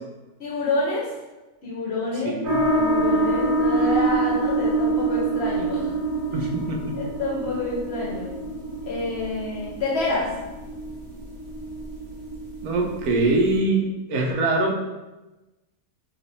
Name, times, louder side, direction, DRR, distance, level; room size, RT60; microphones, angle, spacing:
voice 1, 0.4-1.1 1.6-2.4 2.7-5.9 6.9-8.4 8.9-10.4, left 2 dB, 55° left, -3 dB, 0.9 m, -28 dB
voice 2, 2.2-2.6 6.3-7.0 12.6-14.7, right 2 dB, 90° right, 0 dB, 1.1 m, -23 dB
sound 1, 2.4-13.6, right 2 dB, 70° right, 1.3 m, -26 dB
3.2 x 2.9 x 2.7 m, 1.1 s
omnidirectional pair, 1.5 m